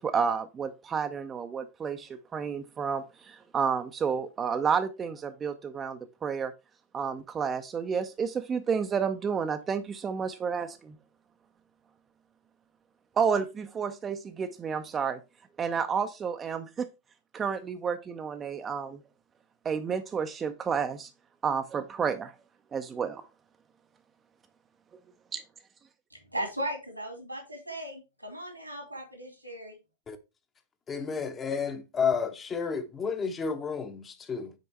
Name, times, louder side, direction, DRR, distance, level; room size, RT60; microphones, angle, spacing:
voice 1, 0.0-6.5 6.9-11.0 13.2-15.2 15.6-16.9 17.3-19.0 19.6-21.1 21.4-22.3 22.7-23.3 25.3-25.4, right 6 dB, 20° right, 0.6 m, -30 dB
voice 2, 26.1-29.8, right 1 dB, 90° right, 2.5 m, -37 dB
voice 3, 30.9-34.5, left 6 dB, 20° left, 0.9 m, -31 dB
6.6 x 4.3 x 4.4 m
figure-of-eight pair, 90°, 0 cm